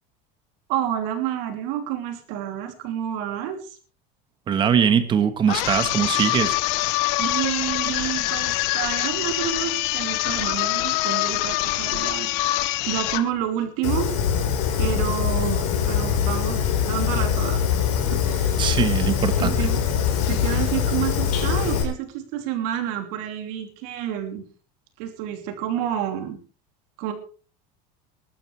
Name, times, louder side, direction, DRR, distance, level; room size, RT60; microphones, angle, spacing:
voice 1, 0.7-3.8 7.2-12.3 12.8-14.2 14.8-17.6 18.1-18.6 19.4-24.4 25.0-26.4 27.0-27.1, right 10 dB, 65° right, 5 dB, 3.0 m, -29 dB
voice 2, 4.5-6.5 18.6-19.5, right 7 dB, 25° right, 10 dB, 1.3 m, -21 dB
sound 1, 5.5-13.3, left 17 dB, 60° left, 1.0 m, -25 dB
Fire, 13.8-21.8, left 8 dB, 80° left, 4.5 m, -23 dB
21.5 x 12.0 x 3.3 m, 0.38 s
cardioid pair, 165°, 20 cm